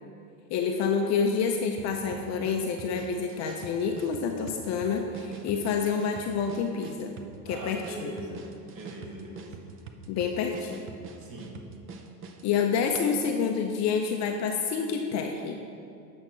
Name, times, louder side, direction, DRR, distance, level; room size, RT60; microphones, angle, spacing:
voice 1, 0.5-7.1 7.5-8.1 10.1-10.8 12.4-15.6, left 6 dB, 35° left, 3 dB, 0.5 m, -28 dB
sound 1, 1.8-12.5, right 4 dB, 25° right, 0.5 m, -45 dB
voice 2, 7.5-8.5 8.7-9.6 11.2-11.6, right 1 dB, 40° right, -1 dB, 1.9 m, -41 dB
8.4 x 6.3 x 5.1 m, 2.5 s
supercardioid pair, 120°, 49 cm